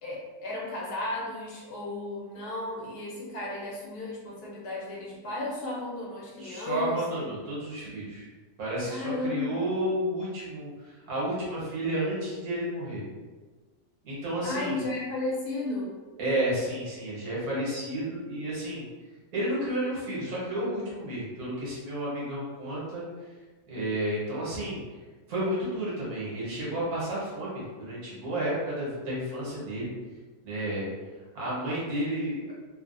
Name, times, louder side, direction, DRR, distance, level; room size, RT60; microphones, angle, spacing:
voice 1, 0.0-7.3 8.9-9.7 14.4-15.9, left 2 dB, 90° left, -5 dB, 1.4 m, -34 dB
voice 2, 6.4-8.3 8.6-13.0 14.0-14.8 16.2-18.9 19.3-23.1 23.7-24.8 25.3-29.9 30.4-30.9 31.3-32.5, right 1 dB, 75° right, -7 dB, 1.6 m, -31 dB
3.3 x 2.3 x 2.5 m, 1.3 s
omnidirectional pair, 1.6 m